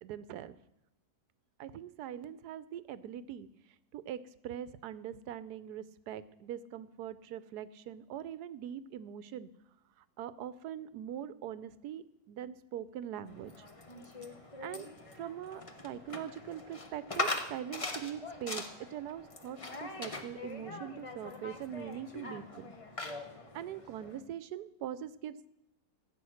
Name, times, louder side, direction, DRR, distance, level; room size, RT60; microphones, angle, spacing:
voice 1, 0.0-0.6 1.6-3.5 3.9-9.5 10.2-13.5 14.6-14.9 15.1-22.7 23.5-25.5, right 10 dB, 80° right, 16 dB, 1.2 m, -42 dB
sound 1, 13.3-24.2, left 2 dB, 25° left, 0.9 m, -42 dB
15.0 x 8.7 x 6.4 m, 0.85 s
omnidirectional pair, 1.7 m